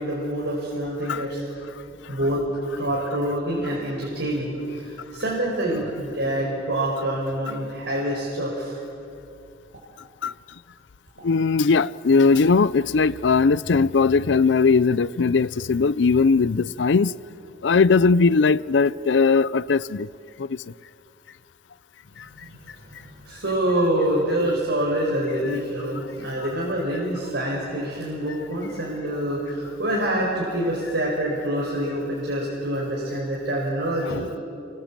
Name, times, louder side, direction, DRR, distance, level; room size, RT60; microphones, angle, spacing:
voice 1, 0.0-1.4 2.1-2.4 2.8-8.8 22.2-34.3, right 1 dB, 75° right, 5.1 m, -26 dB
voice 2, 11.2-17.1 17.6-20.1 34.0-34.2, left 4 dB, 80° left, 0.5 m, -19 dB
28.0 x 24.0 x 7.5 m
head